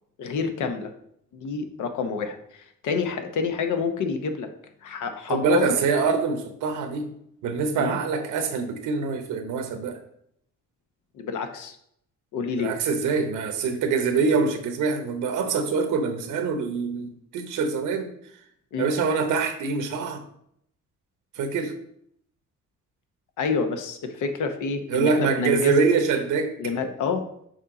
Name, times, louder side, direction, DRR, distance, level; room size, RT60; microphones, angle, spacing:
voice 1, 0.2-0.9 1.3-4.5 4.8-5.7 7.8-8.0 11.1-11.8 12.3-12.7 18.7-18.9 23.4-25.9 26.6-27.2, left 5 dB, 80° left, 6 dB, 0.9 m, -28 dB
voice 2, 5.3-7.1 7.4-10.0 12.6-18.1 18.8-20.2 21.3-21.7 24.9-26.5, right 5 dB, 85° right, 7 dB, 0.9 m, -25 dB
6.5 x 4.4 x 3.8 m, 0.71 s
cardioid pair, 90°, 30 cm